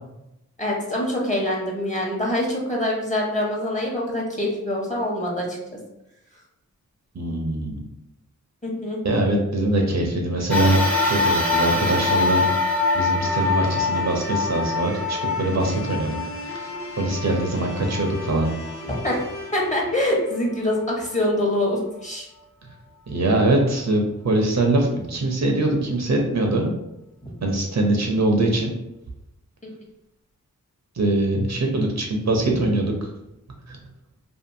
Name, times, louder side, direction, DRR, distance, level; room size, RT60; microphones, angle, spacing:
voice 1, 0.6-5.6 8.6-9.0 18.9-19.2 19.5-22.3 32.5-32.7, left 1 dB, 20° left, -2 dB, 1.0 m, -25 dB
voice 2, 7.1-7.8 9.0-12.4 12.9-16.7 17.0-18.5 23.1-26.7 27.4-28.7 31.0-33.1 33.7-33.8, right 2 dB, 50° right, 1 dB, 0.6 m, -22 dB
sound 1, 10.5-19.1 19.7-19.8 20.9-21.0, left 3 dB, 5° left, 0.7 m, -25 dB
sound 2, 13.2-21.3, left 2 dB, 40° left, 0.9 m, -38 dB
2.6 x 2.5 x 2.6 m, 0.87 s
cardioid pair, 40°, 34 cm